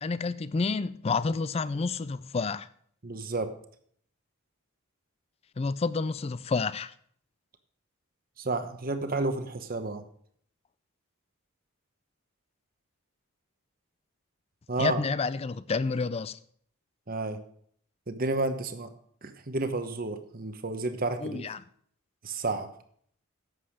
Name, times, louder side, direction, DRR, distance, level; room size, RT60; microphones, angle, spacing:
voice 1, 0.0-2.7 5.6-6.9 14.8-16.4 21.2-21.6, left 4 dB, 30° left, 0.3 m, -29 dB
voice 2, 3.0-3.5 8.4-10.0 14.7-15.0 17.1-17.4 18.1-18.9 19.2-21.4 22.2-22.7, right 2 dB, 40° right, 1.0 m, -31 dB
11.5 x 7.8 x 5.0 m
head